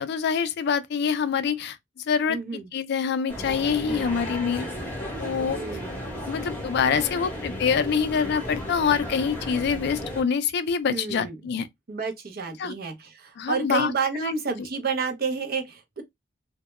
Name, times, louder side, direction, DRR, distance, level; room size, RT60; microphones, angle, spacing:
voice 1, 0.0-4.7 5.2-5.6 6.2-11.7 12.6-12.7 13.4-13.9 14.2-14.3, left 6 dB, 55° left, 0.3 m, -25 dB
voice 2, 2.3-2.7 3.9-4.3 5.5-6.0 10.9-11.4 11.9-16.0, right 5 dB, 50° right, 0.6 m, -30 dB
sound 1, 3.3-10.2, left 1 dB, 10° left, 0.8 m, -34 dB
2.1 x 2.1 x 2.9 m
head